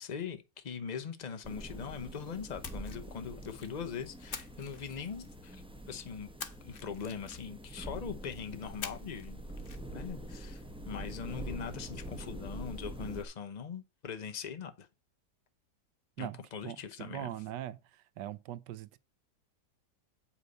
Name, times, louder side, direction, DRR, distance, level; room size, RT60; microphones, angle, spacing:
voice 1, 0.0-6.3 6.6-9.4 9.9-14.9 16.2-17.3, left 6 dB, 70° left, 0.4 m, -41 dB
sound 1, 1.4-13.2, right 1 dB, 5° right, 0.4 m, -45 dB
Splash splatter, 2.6-3.8 4.3-5.5 6.4-7.7 8.8-9.3 9.6-9.8, left 6 dB, 45° left, 0.8 m, -45 dB
voice 2, 16.6-19.0, right 13 dB, 75° right, 1.3 m, -41 dB
8.1 x 5.7 x 5.3 m
omnidirectional pair, 1.9 m